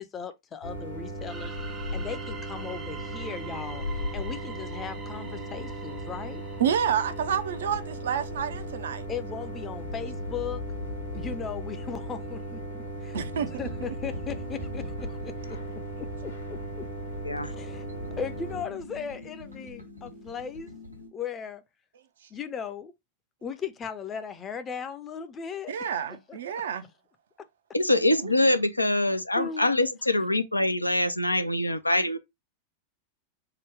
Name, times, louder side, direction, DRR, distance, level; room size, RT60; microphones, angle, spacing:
voice 1, 0.0-1.5 1.9-6.4 9.1-10.6 11.1-15.6 16.2-16.8 17.4-17.9 18.2-20.7 21.1-21.6 22.3-22.9 23.4-25.7 26.3-26.4 29.4-29.7, left 7 dB, 25° left, 0.6 m, -37 dB
sound 1, 0.6-18.6, right 1 dB, 70° left, 1.2 m, -37 dB
sound 2, 1.2-7.9, right 6 dB, 25° right, 0.6 m, -45 dB
sound 3, 1.7-7.9 9.8-21.1, left 2 dB, 85° right, 1.0 m, -44 dB
voice 2, 6.6-9.0 13.1-13.5 25.7-26.9 28.2-28.3, right 8 dB, 60° right, 0.5 m, -29 dB
voice 3, 27.7-32.2, left 1 dB, 85° left, 0.5 m, -24 dB
3.8 x 2.1 x 3.3 m
figure-of-eight pair, 90°, 0 cm